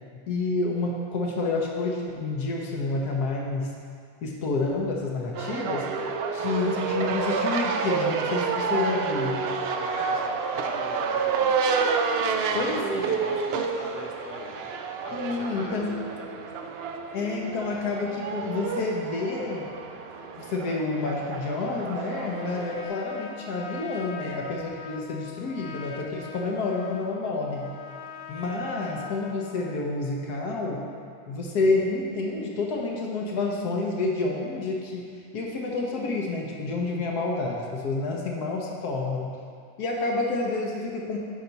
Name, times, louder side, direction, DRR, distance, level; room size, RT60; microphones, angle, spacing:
voice 1, 0.3-3.7 4.2-5.9 6.3-9.5 12.5-13.1 15.1-15.9 17.1-19.7 20.4-27.7 28.3-30.8 31.3-35.0 35.3-39.4 39.8-41.2, left 3 dB, 90° left, -2 dB, 1.4 m, -29 dB
sound 1, 5.3-22.8, right 5 dB, 75° right, 0.5 m, -29 dB
voice 2, 9.6-11.8 12.1-14.7 15.0-16.5, left 2 dB, 55° left, 0 dB, 1.2 m, -42 dB
Trumpet, 22.1-29.7, left 5 dB, 70° left, 0.6 m, -43 dB
10.0 x 4.0 x 5.7 m, 2.3 s
omnidirectional pair, 1.6 m